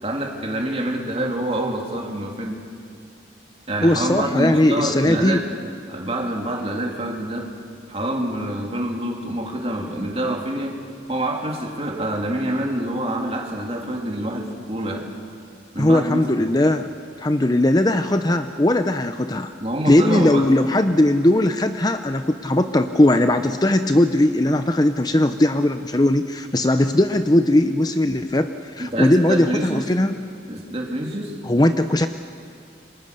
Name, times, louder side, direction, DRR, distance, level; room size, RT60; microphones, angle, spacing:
voice 1, 0.0-2.6 3.7-5.5 5.9-7.5 7.9-10.8 11.1-15.1 15.7-16.5 19.6-20.5 28.8-29.9 30.5-31.4, right 1 dB, 30° right, 1 dB, 2.9 m, -26 dB
voice 2, 3.8-5.4 15.8-16.9 17.2-19.5 19.8-30.1 31.4-32.1, left 1 dB, 20° left, 8 dB, 0.6 m, -19 dB
28.0 x 24.0 x 6.7 m, 2.3 s
head